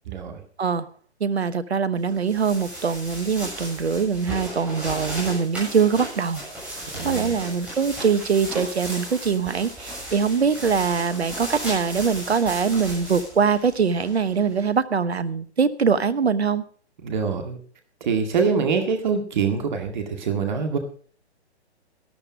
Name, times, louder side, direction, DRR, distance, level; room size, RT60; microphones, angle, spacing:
voice 1, 0.1-0.4 6.9-7.3 17.0-17.6 18.0-20.8, right 5 dB, 45° right, 5 dB, 2.0 m, -24 dB
voice 2, 1.2-6.4 7.0-16.6, right 6 dB, 70° right, 15 dB, 1.1 m, -23 dB
sound 1, 2.1-14.6, equal, 5° right, 7.2 m, -35 dB
12.5 x 12.0 x 5.0 m, 0.43 s
figure-of-eight pair, 130°, 34 cm